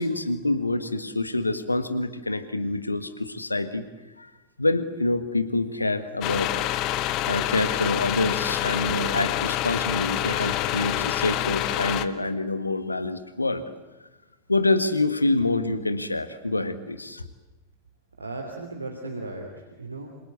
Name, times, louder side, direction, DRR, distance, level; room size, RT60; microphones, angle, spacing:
voice 1, 0.0-3.8 4.2-4.3 4.6-6.7 7.3-13.6 14.5-17.2, left 2 dB, 80° left, 11 dB, 1.7 m, -26 dB
sound 1, 6.2-12.0, left 14 dB, 40° left, 1.3 m, -27 dB
voice 2, 18.2-20.1, right 2 dB, 80° right, 2 dB, 3.1 m, -36 dB
27.0 x 26.5 x 8.3 m, 1.1 s
figure-of-eight pair, 90°, 0 cm